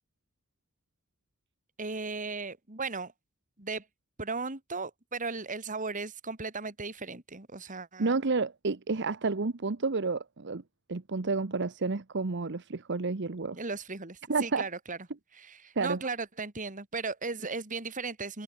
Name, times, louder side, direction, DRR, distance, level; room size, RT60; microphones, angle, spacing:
voice 1, 1.8-3.1 3.6-3.8 4.2-8.1 13.5-15.0 15.3-18.4, right 4 dB, 35° right, 2.7 m, -36 dB
voice 2, 8.0-10.6 10.9-13.6 14.3-14.6 15.8-16.0, right 4 dB, 55° right, 0.9 m, -30 dB
head